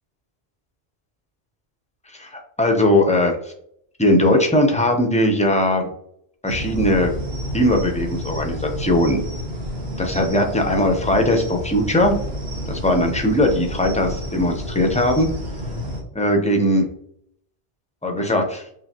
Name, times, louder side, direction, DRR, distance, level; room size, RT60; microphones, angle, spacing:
voice 1, 2.1-3.5 4.0-5.9 6.4-7.1 7.5-9.2 10.0-12.2 12.7-15.3 16.1-16.9 18.0-18.7, left 1 dB, 10° left, 3 dB, 0.4 m, -19 dB
sound 1, 6.5-16.0, equal, 70° right, 1.4 m, -30 dB
4.7 x 3.1 x 2.8 m, 0.69 s
omnidirectional pair, 1.1 m